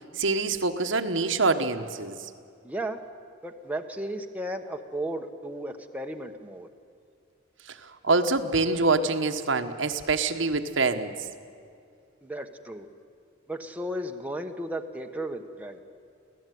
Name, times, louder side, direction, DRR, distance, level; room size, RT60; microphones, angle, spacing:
voice 1, 0.2-2.2 8.0-11.1, right 3 dB, 70° right, 7 dB, 1.3 m, -25 dB
voice 2, 2.6-3.0 3.4-6.7 12.2-12.9 13.5-15.8, right 1 dB, 10° right, 4 dB, 1.1 m, -34 dB
25.0 x 16.5 x 9.4 m, 2.4 s
head